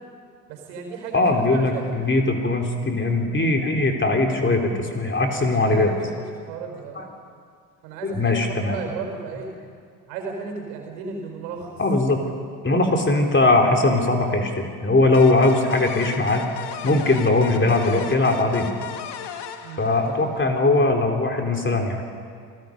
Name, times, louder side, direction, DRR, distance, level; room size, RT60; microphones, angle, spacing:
voice 1, 0.5-1.8 5.3-7.0 7.8-9.5 10.1-11.8 19.6-20.2, right 5 dB, 75° right, 3 dB, 4.5 m, -35 dB
voice 2, 1.1-5.9 7.0-7.1 8.0-8.8 11.8-12.2 12.6-16.5 16.8-18.7 19.8-22.0, left 2 dB, 25° left, 2 dB, 3.6 m, -20 dB
sound 1, 15.1-20.6, left 9 dB, 55° left, 1.6 m, -36 dB
28.5 x 17.5 x 5.3 m, 2.2 s
hypercardioid pair, 55°, 50 cm